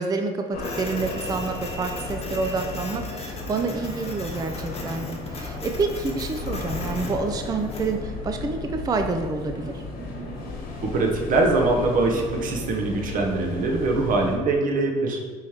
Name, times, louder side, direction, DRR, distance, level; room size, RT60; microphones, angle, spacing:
voice 1, 0.0-9.8, right 4 dB, 20° right, 6 dB, 0.4 m, -28 dB
sound 1, 0.5-14.4, left 3 dB, 60° left, 1.2 m, -34 dB
Printer, 0.6-7.9, left 3 dB, 35° left, 0.9 m, -41 dB
voice 2, 10.8-15.2, right 3 dB, 50° right, 1 dB, 0.8 m, -23 dB
5.3 x 3.2 x 2.9 m, 1.4 s
supercardioid pair, 75°, 18 cm